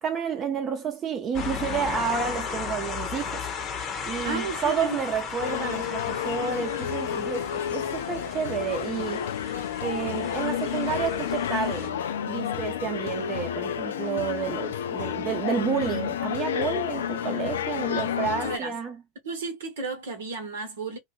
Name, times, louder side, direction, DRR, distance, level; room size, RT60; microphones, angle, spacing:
voice 1, 0.0-3.5 4.0-9.2 9.8-12.0 12.3-19.0, right 7 dB, 35° right, 0.7 m, -30 dB
sound 1, 1.3-11.9, left 6 dB, 40° left, 0.8 m, -35 dB
voice 2, 4.2-5.0 18.3-18.8 19.2-21.0, right 3 dB, 70° right, 0.9 m, -33 dB
sound 2, 5.4-18.6, left 9 dB, 75° left, 0.4 m, -30 dB
2.4 x 2.2 x 3.1 m
figure-of-eight pair, 80°, 0 cm